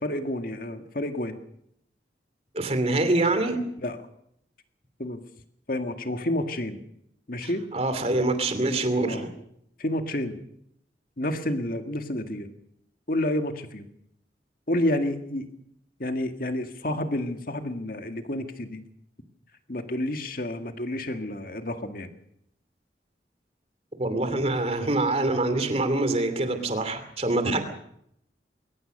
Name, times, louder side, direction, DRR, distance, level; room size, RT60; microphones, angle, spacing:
voice 1, 0.0-1.4 3.8-4.0 5.0-5.2 5.7-6.8 7.3-7.6 9.0-9.3 9.8-10.4 11.2-12.5 13.1-13.9 14.7-15.5 16.0-18.8 19.7-22.1, left 1 dB, 50° left, 7 dB, 1.9 m, -29 dB
voice 2, 2.5-3.6 7.4-9.3 24.0-27.6, right 2 dB, 35° right, 9 dB, 2.8 m, -25 dB
22.0 x 18.5 x 6.6 m, 0.73 s
head